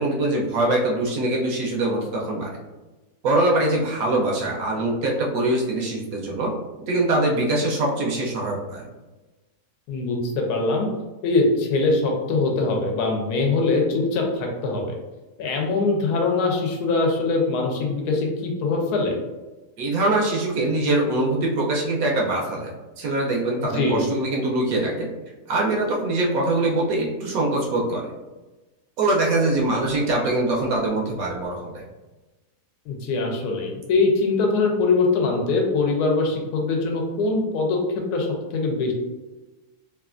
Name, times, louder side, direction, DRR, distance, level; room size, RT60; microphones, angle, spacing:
voice 1, 0.0-2.6 3.2-6.5 6.9-8.9 19.8-25.1 25.5-28.1 29.0-31.8, right 2 dB, 70° right, -2 dB, 1.0 m, -23 dB
voice 2, 9.9-10.9 11.2-14.8 15.4-19.2 23.7-24.1 32.9-38.9, left 3 dB, 80° left, 1 dB, 1.1 m, -22 dB
3.1 x 2.3 x 2.4 m, 1.1 s
omnidirectional pair, 1.7 m